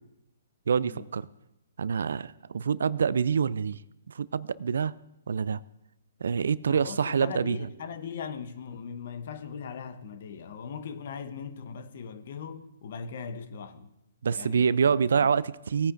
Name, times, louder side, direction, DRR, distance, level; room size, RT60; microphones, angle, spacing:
voice 1, 0.7-1.3 1.8-3.8 4.1-4.9 5.3-5.6 6.2-7.7 14.2-15.9, right 6 dB, 75° right, 0.3 m, -26 dB
voice 2, 6.7-13.9 14.3-14.8 15.1-15.3, left 6 dB, 60° left, 0.9 m, -39 dB
18.5 x 9.5 x 2.5 m
hypercardioid pair, 135°, 0 cm